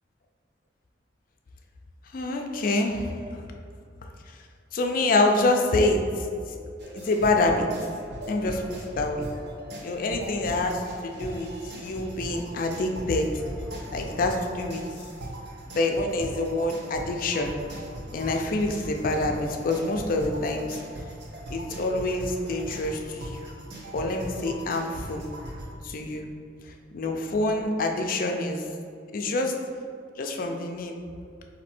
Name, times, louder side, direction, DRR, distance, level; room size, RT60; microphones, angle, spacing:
voice 1, 2.1-3.4 4.7-6.4 6.9-7.7 8.3-8.7 9.0-9.3 9.8-13.3 13.9-14.8 15.7-17.5 18.1-20.8 21.5-23.5 23.9-25.2 25.8-26.3 26.9-28.7 29.1-29.5 30.2-31.0, left 2 dB, 50° left, 3 dB, 0.4 m, -26 dB
sound 1, 6.8-25.7, right 1 dB, 65° right, 0.8 m, -39 dB
4.2 x 2.6 x 4.3 m, 2.3 s
head